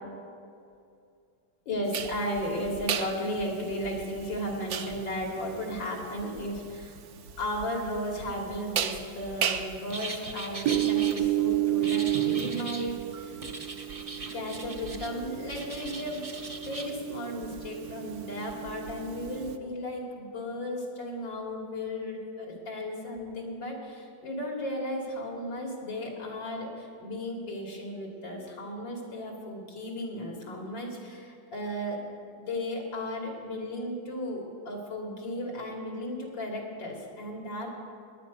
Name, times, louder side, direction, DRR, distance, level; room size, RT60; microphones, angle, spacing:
voice 1, 1.7-7.0 7.4-13.4 14.3-16.2 16.6-32.0 32.3-37.8, left 1 dB, 90° left, 0 dB, 3.4 m, -35 dB
sound 1, 1.9-19.6, right 11 dB, 65° right, 1.1 m, -32 dB
sound 2, 9.9-11.2 11.8-12.9 13.4-15.1 15.5-16.9, right 3 dB, 30° right, 0.6 m, -40 dB
18.0 x 11.0 x 5.3 m, 2.4 s
omnidirectional pair, 2.0 m